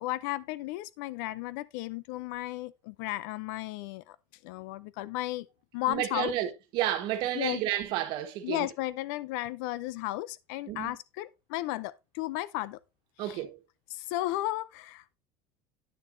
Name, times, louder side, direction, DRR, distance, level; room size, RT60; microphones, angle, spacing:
voice 1, 0.0-4.2 4.4-5.5 5.7-6.3 7.3-7.6 8.4-12.8 13.2-13.4 13.9-15.1, left 16 dB, 85° left, 0.5 m, -34 dB
voice 2, 5.9-8.7 10.7-11.0 13.2-13.6, right 12 dB, 55° right, 1.3 m, -31 dB
9.4 x 6.8 x 2.6 m
cardioid pair, 165°, 10 cm